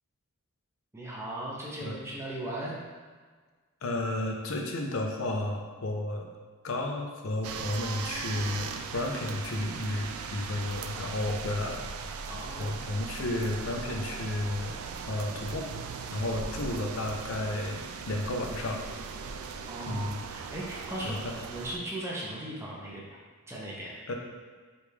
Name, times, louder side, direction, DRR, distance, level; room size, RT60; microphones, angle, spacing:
voice 1, 0.9-2.8 12.3-12.7 16.4-16.5 19.7-20.0 20.3-21.2 21.5-23.0 23.5-23.9, right 1 dB, 10° right, -5 dB, 0.6 m, -37 dB
voice 2, 3.8-6.3 6.6-11.8 12.6-14.8 15.1-15.7 16.1-18.8 19.9-20.2 21.0-21.3 24.1-24.2, left 1 dB, 70° left, 1 dB, 0.6 m, -32 dB
sound 1, 7.4-21.8, right 5 dB, 75° right, 0.3 m, -39 dB
5.1 x 2.4 x 3.2 m, 1.5 s
head